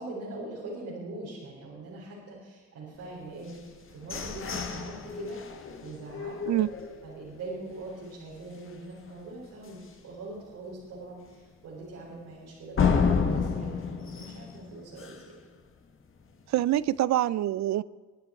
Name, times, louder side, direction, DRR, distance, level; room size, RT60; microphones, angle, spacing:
voice 1, 0.0-5.4 5.8-6.4 7.0-15.2, right 2 dB, 90° right, 4.5 m, -42 dB
sound 1, 3.5-7.4 7.8-7.9 8.3-8.7 9.1-9.2 9.7-9.8 12.8-15.4, left 6 dB, 45° left, 1.7 m, -30 dB
voice 2, 16.5-17.8, right 13 dB, 65° right, 0.5 m, -25 dB
23.5 x 9.5 x 4.4 m
cardioid pair, 90°, 30 cm